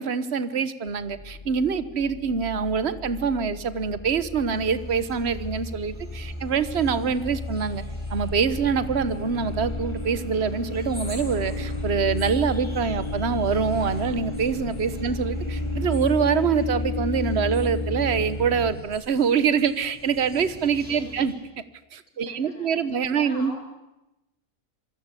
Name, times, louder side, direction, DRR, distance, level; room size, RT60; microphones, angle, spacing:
voice 1, 0.0-7.8 8.1-21.3 21.9-23.5, right 6 dB, 50° right, 14 dB, 1.5 m, -25 dB
sound 1, 0.9-18.7, left 2 dB, 20° left, 2.7 m, -32 dB
sound 2, 4.5-21.4, equal, 5° right, 6.5 m, -46 dB
voice 2, 20.9-21.2 22.3-22.9 23.2-23.6, left 2 dB, 60° left, 4 dB, 5.6 m, -44 dB
27.5 x 22.0 x 8.3 m, 0.94 s
omnidirectional pair, 1.5 m